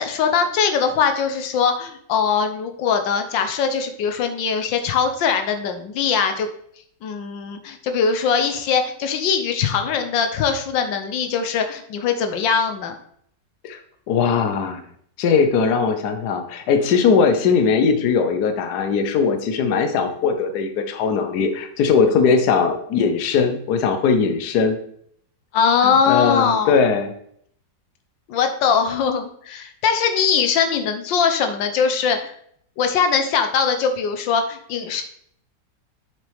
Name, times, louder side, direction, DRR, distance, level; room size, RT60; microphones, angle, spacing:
voice 1, 0.0-6.5 7.0-12.9 22.2-22.3 25.5-26.7 28.3-32.3 32.8-35.0, left 6 dB, 90° left, 7 dB, 1.6 m, -21 dB
voice 2, 14.1-14.8 15.2-24.8 25.8-27.1, left 5 dB, 65° left, 7 dB, 1.3 m, -19 dB
7.5 x 6.6 x 3.4 m, 0.65 s
omnidirectional pair, 1.9 m